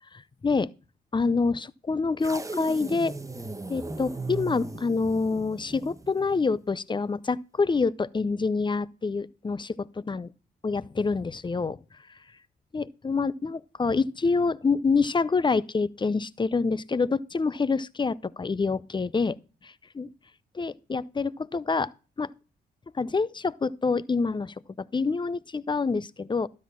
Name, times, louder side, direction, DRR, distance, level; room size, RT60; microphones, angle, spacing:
voice 1, 0.1-0.7 1.1-3.2 3.7-10.3 10.6-11.8 12.7-19.4 19.6-20.1 20.5-21.9 22.2-22.3 22.9-26.5, left 4 dB, 20° left, 0.5 m, -27 dB
sound 1, 2.2-6.5, right 3 dB, 15° right, 1.1 m, -38 dB
12.5 x 4.3 x 7.2 m
hypercardioid pair, 45°, 21 cm